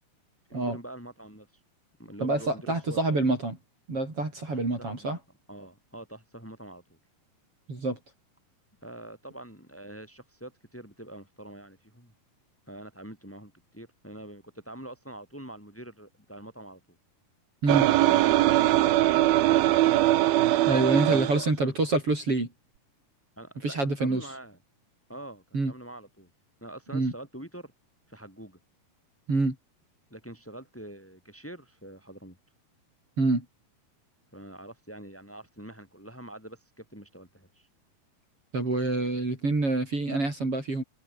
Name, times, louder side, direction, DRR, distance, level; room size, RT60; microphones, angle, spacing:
voice 1, 0.5-1.5 2.0-3.2 4.5-5.2 5.5-7.0 8.8-12.1 12.7-17.0 20.7-21.7 23.4-24.6 25.1-26.3 26.6-27.7 28.1-28.6 30.1-32.4 34.3-37.7, right 1 dB, 5° left, 7.1 m, -45 dB
voice 2, 2.2-3.6 3.9-5.2 7.7-8.0 17.6-17.9 20.7-22.5 23.6-24.3 25.5-25.7 26.9-27.1 29.3-29.6 33.2-33.5 38.5-40.8, right 2 dB, 35° right, 7.1 m, -26 dB
sound 1, 17.7-21.4, right 15 dB, 75° right, 2.8 m, -21 dB
omnidirectional pair, 4.4 m